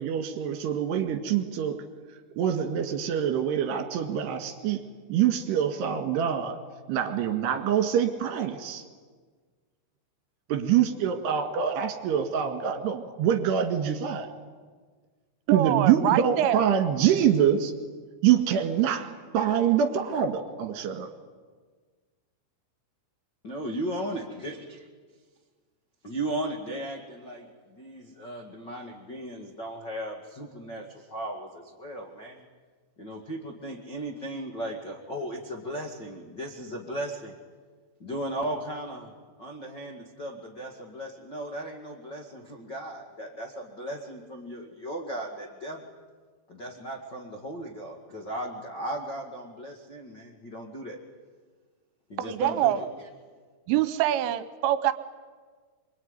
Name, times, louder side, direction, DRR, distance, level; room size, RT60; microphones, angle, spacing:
voice 1, 0.0-1.8 2.4-4.8 5.1-6.6 6.9-8.9 10.5-14.3 15.5-17.7 18.2-19.1 19.3-21.1, right 9 dB, 60° right, 6 dB, 3.6 m, -25 dB
voice 2, 15.5-16.6 52.2-52.8 53.7-54.9, right 12 dB, 80° right, 12 dB, 3.3 m, -24 dB
voice 3, 23.4-24.6 26.0-32.4 33.0-37.3 38.0-39.1 39.4-45.9 46.5-51.0 52.1-52.8, right 1 dB, 85° left, 1 dB, 0.9 m, -36 dB
25.5 x 23.5 x 9.8 m, 1.5 s
omnidirectional pair, 5.9 m